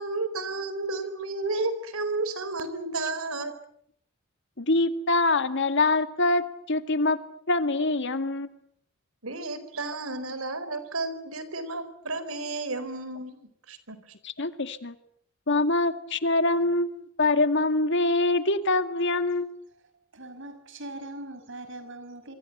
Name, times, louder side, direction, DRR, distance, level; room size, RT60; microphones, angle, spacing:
voice 1, 0.0-3.5 9.2-14.1, right 3 dB, 80° right, 13 dB, 4.4 m, -32 dB
voice 2, 4.6-6.4 6.7-7.2 7.5-8.5 14.2-14.9 15.5-19.5, left 2 dB, 60° left, 10 dB, 2.0 m, -24 dB
voice 3, 20.1-22.3, right 1 dB, 60° right, 10 dB, 6.1 m, -41 dB
27.0 x 24.5 x 7.9 m, 0.69 s
head